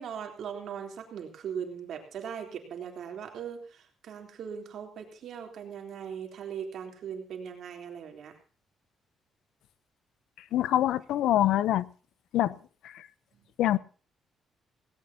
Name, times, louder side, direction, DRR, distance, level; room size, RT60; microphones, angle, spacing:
voice 1, 0.0-8.3 12.4-12.5, right 7 dB, 60° right, 3.5 m, -39 dB
voice 2, 10.5-11.9 12.3-12.5 13.6-13.8, left 13 dB, 90° left, 0.7 m, -24 dB
18.0 x 17.5 x 2.8 m
cardioid pair, 155°, 0 cm